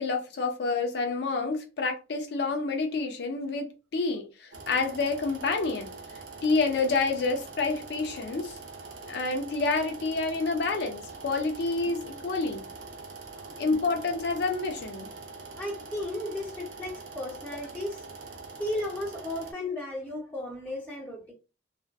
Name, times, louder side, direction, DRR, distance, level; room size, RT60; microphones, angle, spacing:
voice 1, 0.0-6.0 6.4-8.6 9.1-12.6 13.6-15.1, left 3 dB, 65° left, 0.5 m, -28 dB
sound 1, 4.5-19.5, right 4 dB, 80° right, 0.6 m, -44 dB
voice 2, 15.6-18.0 18.6-21.3, left 1 dB, 10° left, 0.9 m, -35 dB
2.4 x 2.2 x 2.3 m
head